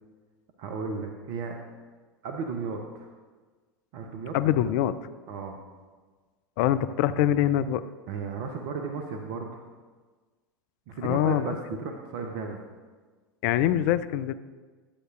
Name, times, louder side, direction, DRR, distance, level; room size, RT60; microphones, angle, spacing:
voice 1, 0.6-1.6 2.2-3.1 3.9-4.3 5.3-5.6 8.1-9.6 10.9-12.6, right 5 dB, 55° right, 3 dB, 0.8 m, -34 dB
voice 2, 4.3-5.0 6.6-7.8 11.0-11.5 13.4-14.3, left 11 dB, 50° left, 14 dB, 0.4 m, -24 dB
11.5 x 7.8 x 2.5 m, 1.4 s
figure-of-eight pair, 85°, 12 cm